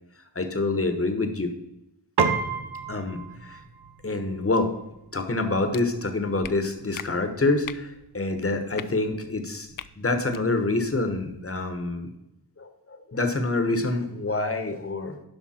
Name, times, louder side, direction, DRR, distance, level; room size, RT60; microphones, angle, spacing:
voice 1, 0.3-1.5 2.9-3.6 4.0-4.7 5.1-9.7 10.0-12.1 12.6-15.2, left 2 dB, 35° left, 7 dB, 1.2 m, -26 dB
Piano, 2.2-11.8, right 5 dB, 70° right, 0.9 m, -35 dB
sound 1, 5.7-5.8 6.4-6.5 6.9-7.1 7.6-7.8 8.7-8.9 9.7-9.9 10.3-10.4, left 9 dB, 55° left, 0.4 m, -37 dB
11.5 x 5.6 x 4.3 m, 0.90 s
wide cardioid pair, 95°, 41 cm